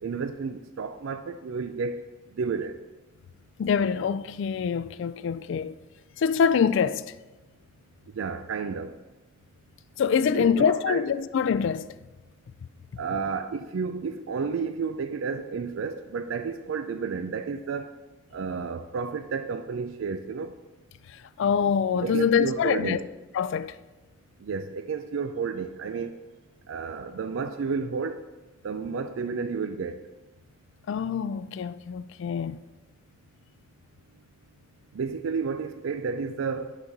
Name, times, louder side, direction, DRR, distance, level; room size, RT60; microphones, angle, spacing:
voice 1, 0.0-2.0 2.4-2.8 8.1-8.9 10.3-11.1 13.0-17.9 18.3-20.5 22.0-23.1 24.4-26.1 26.7-28.2 28.6-30.0 34.9-36.8, right 5 dB, 75° right, 0.4 m, -31 dB
voice 2, 3.6-5.8 6.2-7.0 10.0-11.9 21.4-23.0 23.3-23.7 30.9-32.6, left 7 dB, 65° left, 0.3 m, -25 dB
9.6 x 4.0 x 5.9 m
head